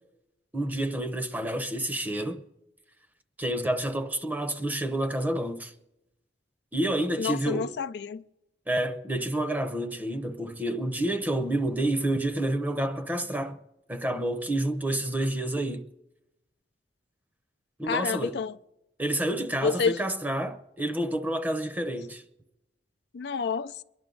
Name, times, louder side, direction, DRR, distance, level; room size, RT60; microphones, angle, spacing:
voice 1, 0.5-2.4 3.4-5.7 6.7-7.7 8.7-13.6 13.9-15.8 17.8-18.4 19.0-22.2, right 1 dB, 10° right, 0.8 m, -29 dB
voice 2, 7.2-8.2 17.9-18.6 19.6-20.1 23.1-23.8, left 5 dB, 70° left, 0.4 m, -29 dB
23.5 x 11.0 x 3.9 m
head